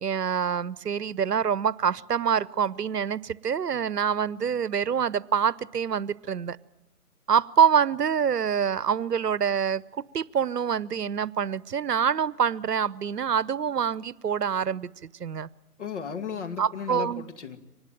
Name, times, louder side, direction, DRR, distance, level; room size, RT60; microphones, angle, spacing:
voice 1, 0.0-6.6 7.3-9.8 10.1-14.9 15.2-15.5 16.6-17.2, right 7 dB, 75° right, 21 dB, 0.9 m, -26 dB
voice 2, 15.8-17.6, left 6 dB, 45° left, 7 dB, 2.3 m, -35 dB
24.5 x 19.5 x 9.1 m, 1.1 s
figure-of-eight pair, 160°, 47 cm